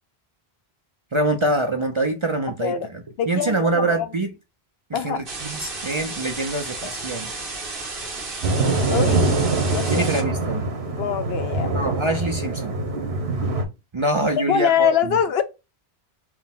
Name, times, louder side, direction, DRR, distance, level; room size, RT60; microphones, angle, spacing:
voice 1, 1.1-2.7 3.3-4.3 4.9-7.3 9.9-10.7 11.7-12.7 13.9-15.2, right 2 dB, 40° right, 0.5 m, -24 dB
voice 2, 3.2-4.1 4.9-5.3 8.8-9.3 9.7-10.1 10.8-11.8 14.5-15.4, left 8 dB, 75° left, 0.9 m, -23 dB
sound 1, 5.3-10.2, right 3 dB, 60° right, 1.4 m, -33 dB
sound 2, 8.4-13.6, right 3 dB, 80° right, 1.3 m, -23 dB
4.7 x 2.1 x 3.5 m
omnidirectional pair, 1.1 m